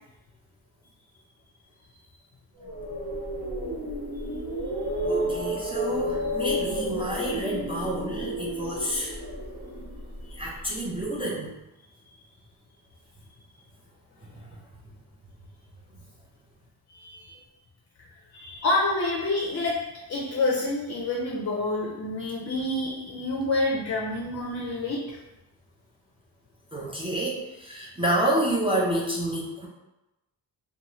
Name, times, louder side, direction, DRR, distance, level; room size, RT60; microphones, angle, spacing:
sound 1, 2.6-10.7, equal, 60° right, 0.9 m, -31 dB
voice 1, 5.1-9.2 10.4-11.5 26.7-29.7, right 1 dB, 15° right, -5 dB, 0.4 m, -29 dB
voice 2, 16.9-17.4 18.0-19.8 20.1-25.2, left 2 dB, 35° left, -2 dB, 0.5 m, -28 dB
2.6 x 2.3 x 2.9 m, 0.97 s
wide cardioid pair, 115°, 42 cm